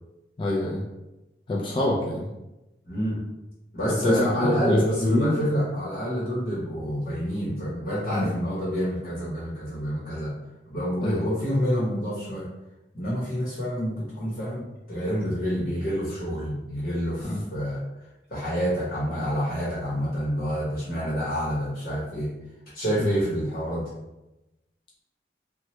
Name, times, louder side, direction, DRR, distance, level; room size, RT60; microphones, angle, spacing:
voice 1, 0.4-0.8 1.5-2.3 4.0-5.4 8.1-8.3 11.0-11.3 17.2-17.4 23.0-23.2, left 1 dB, 30° left, -4 dB, 0.3 m, -25 dB
voice 2, 2.9-3.2 3.7-10.3 10.6-12.5 12.9-17.8 18.3-22.3 22.7-23.9, equal, 50° left, -8 dB, 0.9 m, -28 dB
3.0 x 2.2 x 2.9 m, 0.98 s
head